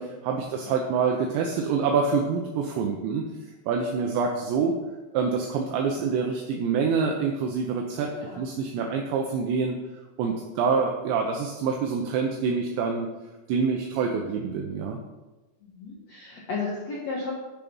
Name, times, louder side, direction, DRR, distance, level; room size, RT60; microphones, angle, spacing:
voice 1, 0.0-3.3 3.7-4.7 5.1-8.1 8.4-9.8 10.2-13.1 13.5-15.0, right 5 dB, 80° right, 2 dB, 2.8 m, -26 dB
voice 2, 8.1-8.4 10.5-10.6 15.6-17.3, left 4 dB, 85° left, -4 dB, 1.5 m, -34 dB
10.5 x 7.4 x 5.5 m, 1.2 s
omnidirectional pair, 5.7 m